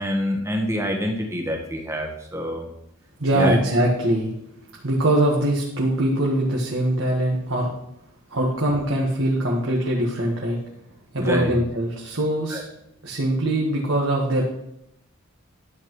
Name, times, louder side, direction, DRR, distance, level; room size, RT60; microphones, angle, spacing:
voice 1, 0.0-2.7 3.3-3.6 11.2-11.5 12.5-12.6, equal, 15° right, 1 dB, 1.3 m, -26 dB
voice 2, 3.2-4.3 4.8-7.7 8.3-10.6 11.1-12.6 13.0-14.4, right 1 dB, 65° right, -3 dB, 1.4 m, -22 dB
11.5 x 7.9 x 3.1 m, 0.79 s
head